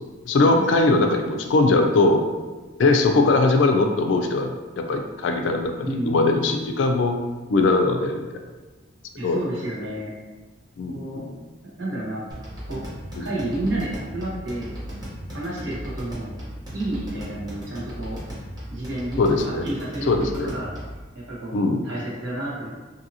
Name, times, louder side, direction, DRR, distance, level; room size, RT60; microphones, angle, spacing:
voice 1, 0.0-2.2 2.8-7.2 7.5-8.2 9.2-9.4 10.8-11.3 13.2-13.3 19.2-19.6 20.1-20.5 21.5-21.8, left 3 dB, 75° left, 4 dB, 0.3 m, -20 dB
voice 2, 5.8-6.3 9.1-10.1 10.8-11.2 11.8-12.2 12.7-12.8 13.2-14.7 15.3-16.3 16.7-18.2 18.7-20.1 20.4-20.7 21.1-21.6 21.8-22.7, right 1 dB, 75° right, -7 dB, 1.1 m, -30 dB
sound 1, 12.3-21.0, equal, 20° right, 0.7 m, -36 dB
2.7 x 2.7 x 2.6 m, 1.3 s
head